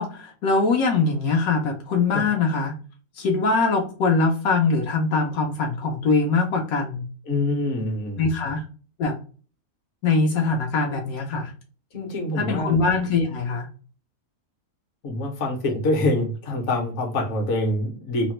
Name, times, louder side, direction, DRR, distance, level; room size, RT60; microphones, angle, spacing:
voice 1, 0.0-2.7 3.2-7.1 8.2-8.6 9.0-9.2 10.0-11.5 12.4-13.7, left 4 dB, 80° left, 2 dB, 1.1 m, -22 dB
voice 2, 7.3-8.3 11.9-12.7 15.0-18.3, left 1 dB, 60° left, 2 dB, 1.1 m, -25 dB
2.9 x 2.1 x 2.9 m, 0.38 s
omnidirectional pair, 1.5 m